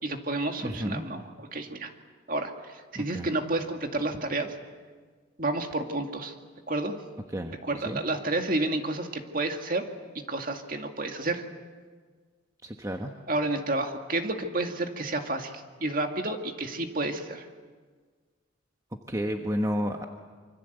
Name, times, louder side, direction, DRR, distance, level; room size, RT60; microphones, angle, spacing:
voice 1, 0.0-1.9 2.3-4.6 5.4-6.4 6.7-6.9 7.6-9.8 10.3-11.4 13.3-15.5 15.8-17.5, right 2 dB, 45° right, 4 dB, 2.2 m, -30 dB
voice 2, 0.6-1.0 2.9-3.3 7.3-7.6 7.8-8.0 12.6-13.1 19.1-20.0, equal, 15° right, 3 dB, 1.2 m, -31 dB
26.5 x 25.0 x 8.1 m, 1.5 s
head